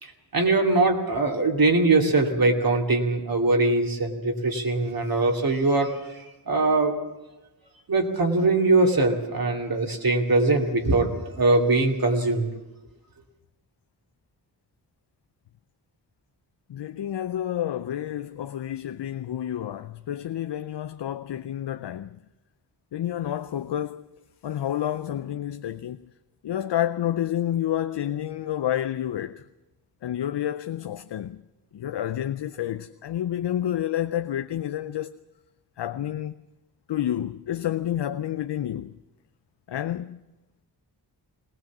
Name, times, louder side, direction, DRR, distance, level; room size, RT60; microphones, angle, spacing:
voice 1, 0.0-7.0 7.9-12.5, right 2 dB, 55° right, 2.5 m, -22 dB
voice 2, 16.7-22.2 22.9-26.0 26.4-29.5 30.0-31.4 31.7-35.2 35.8-36.3 36.9-38.9 39.7-40.2, left 11 dB, 90° left, 0.6 m, -29 dB
20.0 x 18.5 x 7.3 m
wide cardioid pair, 115°, 40 cm